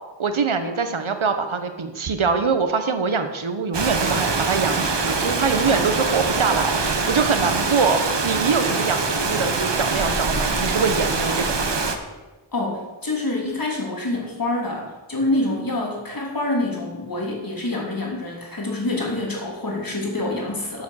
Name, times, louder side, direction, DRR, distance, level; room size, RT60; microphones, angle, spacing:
voice 1, 0.2-11.6, right 5 dB, 90° right, 8 dB, 1.3 m, -23 dB
Rain, 3.7-12.0, right 4 dB, 60° right, 1.3 m, -23 dB
voice 2, 12.5-20.8, left 2 dB, 45° left, -1 dB, 3.4 m, -26 dB
13.0 x 7.4 x 6.5 m, 1.2 s
wide cardioid pair, 75°, 47 cm